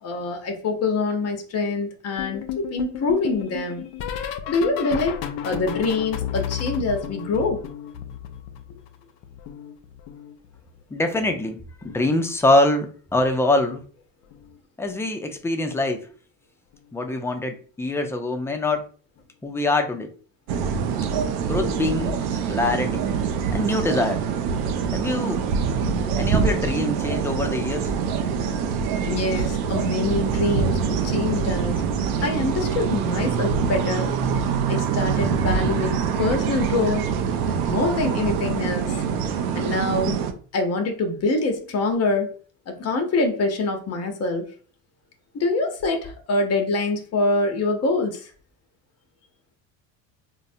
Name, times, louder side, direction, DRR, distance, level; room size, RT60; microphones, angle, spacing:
voice 1, 0.0-3.8 4.5-7.6 29.1-30.8 31.0-31.8 32.2-34.1 34.7-37.1 37.5-38.9 39.5-40.2 40.5-42.3 42.7-44.4 45.3-48.3, left 3 dB, 40° left, 3 dB, 0.8 m, -25 dB
sound 1, 2.2-9.0 9.2-10.8 11.8-12.2 12.4-12.8 14.3-14.6 14.9-15.2 16.7-16.8, left 9 dB, 70° left, 0.5 m, -33 dB
voice 2, 10.9-13.8 14.8-16.1 16.9-18.8 19.4-20.1 21.5-23.1 23.5-24.2 24.9-25.5 26.1-27.9, left 2 dB, 5° left, 5 dB, 0.4 m, -24 dB
sound 2, 20.5-40.3, right 6 dB, 80° right, 0.6 m, -24 dB
3.8 x 2.1 x 2.6 m, 0.41 s
supercardioid pair, 85°, 40 cm